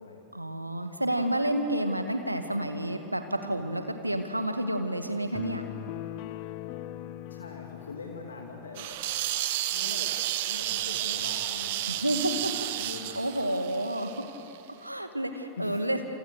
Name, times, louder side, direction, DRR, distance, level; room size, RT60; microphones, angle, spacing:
voice 1, 0.3-5.6 11.9-12.5 13.2-14.3 14.8-16.0, right 1 dB, 85° right, 7 dB, 1.9 m, -30 dB
sound 1, 5.3-8.9, left 13 dB, 45° left, 0.9 m, -40 dB
voice 2, 7.3-8.9 9.7-10.2 10.4-13.1 15.6-15.8, left 4 dB, 70° left, 1 dB, 2.5 m, -43 dB
sound 2, 8.8-14.6, right 13 dB, 50° right, 1.3 m, -32 dB
28.5 x 27.0 x 6.6 m, 2.8 s
figure-of-eight pair, 90°, 0 cm